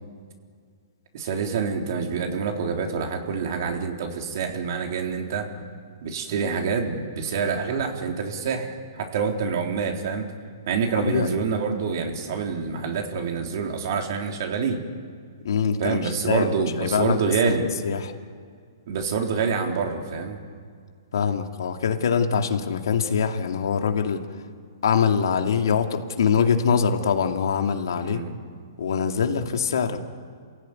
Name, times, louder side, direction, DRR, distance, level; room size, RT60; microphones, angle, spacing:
voice 1, 1.1-5.5 6.0-10.3 10.7-14.8 15.8-17.7 18.9-20.4 28.0-28.3, right 5 dB, 55° right, 2 dB, 3.7 m, -26 dB
voice 2, 11.1-11.4 15.4-16.5 16.8-17.5 17.8-18.1 21.1-24.2 24.8-28.2 28.8-30.0, left 6 dB, 75° left, 4 dB, 2.4 m, -23 dB
28.0 x 16.0 x 9.5 m, 2.1 s
hypercardioid pair, 150°, 2 cm